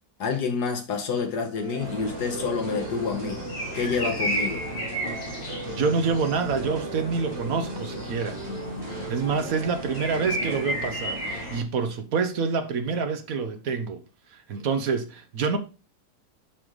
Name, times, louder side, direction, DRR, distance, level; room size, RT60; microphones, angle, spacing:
voice 1, 0.2-3.4 3.7-4.6, left 5 dB, 85° left, 1.8 m, -28 dB
sound 1, 1.5-10.7, right 4 dB, 90° right, 2.5 m, -41 dB
sound 2, 1.8-11.6, equal, 65° left, 2.9 m, -33 dB
voice 2, 5.7-8.4 9.1-14.0 14.3-15.6, right 5 dB, 65° right, 1.3 m, -27 dB
11.0 x 3.9 x 3.2 m
omnidirectional pair, 1.7 m